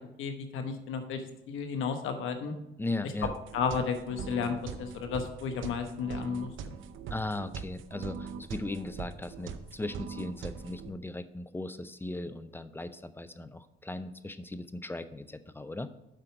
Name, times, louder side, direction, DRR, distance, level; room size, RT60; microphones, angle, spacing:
voice 1, 0.2-1.2 1.5-2.5 3.5-6.5, left 6 dB, 85° left, 6 dB, 1.1 m, -33 dB
voice 2, 2.8-3.3 7.1-15.9, left 2 dB, 10° left, 12 dB, 0.5 m, -38 dB
sound 1, 3.2-10.9, right 6 dB, 80° right, 0.7 m, -41 dB
7.7 x 4.5 x 6.0 m, 0.87 s
cardioid pair, 90°, 20 cm